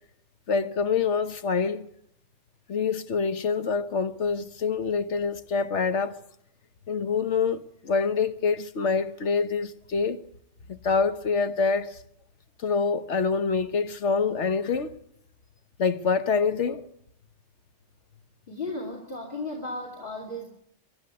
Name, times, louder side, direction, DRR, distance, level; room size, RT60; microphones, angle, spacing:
voice 1, 0.5-1.9 2.7-6.2 6.9-10.2 10.7-12.0 12.6-14.9 15.8-16.8, left 5 dB, 70° left, 1.4 m, -26 dB
voice 2, 18.5-20.4, left 2 dB, 45° left, 3.0 m, -35 dB
24.0 x 11.5 x 9.7 m
omnidirectional pair, 1.3 m